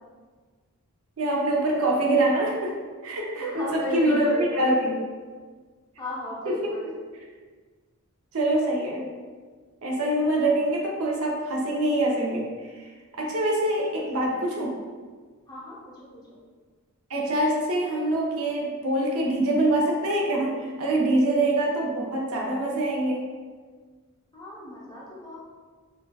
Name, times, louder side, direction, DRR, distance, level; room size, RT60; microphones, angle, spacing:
voice 1, 1.2-4.3 4.6-4.9 6.5-6.7 8.3-9.0 9.8-12.9 13.2-14.7 17.1-23.3, right 1 dB, 70° right, -2 dB, 0.6 m, -25 dB
voice 2, 3.4-4.8 6.0-6.9 14.0-14.1 15.5-16.2 24.3-25.4, right 1 dB, 20° left, -7 dB, 0.6 m, -33 dB
3.6 x 2.2 x 2.3 m, 1.5 s
head